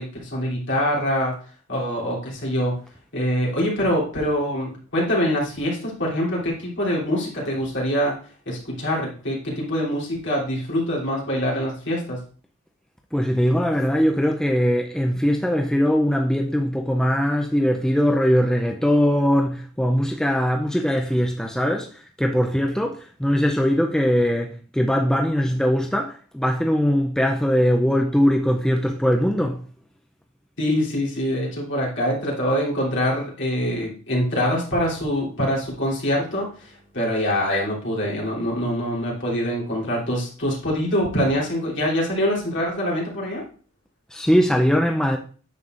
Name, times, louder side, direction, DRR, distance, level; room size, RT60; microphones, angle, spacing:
voice 1, 0.0-1.4 1.7-2.8 3.1-8.2 8.4-12.2 30.6-43.4, equal, 55° left, 3.1 m, -24 dB
voice 2, 13.1-29.6 44.1-45.2, equal, 5° left, 0.4 m, -21 dB
9.3 x 7.1 x 2.5 m
head